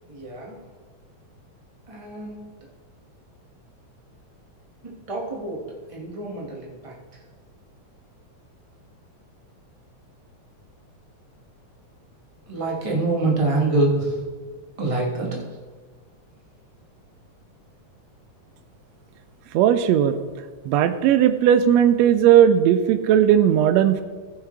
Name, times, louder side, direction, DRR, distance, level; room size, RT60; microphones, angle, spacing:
voice 1, 0.1-0.6 1.9-2.4 4.8-6.9 12.5-14.2 14.8-15.4, right 2 dB, 15° right, -3 dB, 1.5 m, -26 dB
voice 2, 19.5-20.2 20.6-24.0, right 9 dB, 80° right, 10 dB, 1.7 m, -17 dB
15.0 x 8.1 x 3.4 m, 1.4 s
omnidirectional pair, 3.4 m